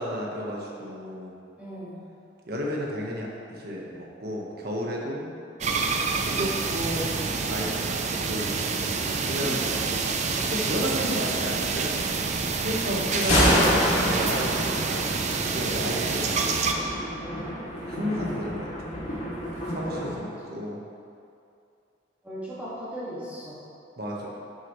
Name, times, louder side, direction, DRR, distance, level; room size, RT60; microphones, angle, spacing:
voice 1, 0.0-1.3 2.5-5.3 6.2-8.7 9.3-9.9 10.3-12.0 12.6-14.7 15.5-16.5 17.8-18.7 19.7-20.8 24.0-24.3, equal, 55° right, -2 dB, 1.3 m, -32 dB
voice 2, 1.6-2.0 8.9-9.6 12.8-13.6 20.4-20.5 22.2-23.6, equal, 5° right, -10 dB, 2.0 m, -40 dB
sound 1, 5.6-16.7, right 4 dB, 35° right, 0.5 m, -27 dB
Thunder, 12.9-20.2, equal, 40° left, 2.2 m, -27 dB
10.5 x 7.1 x 3.2 m, 2.5 s
head